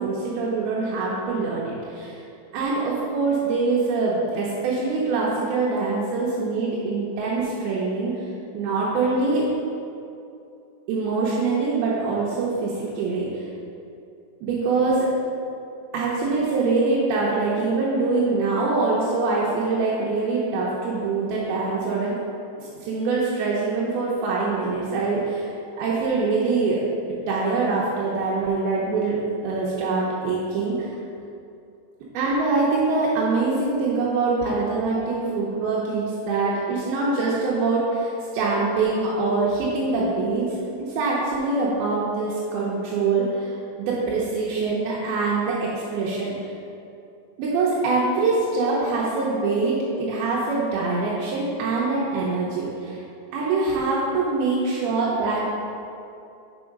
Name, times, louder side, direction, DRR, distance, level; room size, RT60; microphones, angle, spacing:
voice 1, 0.0-2.2 2.5-8.1 8.5-9.5 10.9-13.5 14.4-15.1 15.9-22.2 22.6-25.5 25.8-26.8 27.3-31.0 32.1-46.3 47.4-53.0 53.3-55.4, right 3 dB, 80° right, -6 dB, 2.3 m, -24 dB
7.0 x 4.8 x 5.2 m, 2.6 s
omnidirectional pair, 5.2 m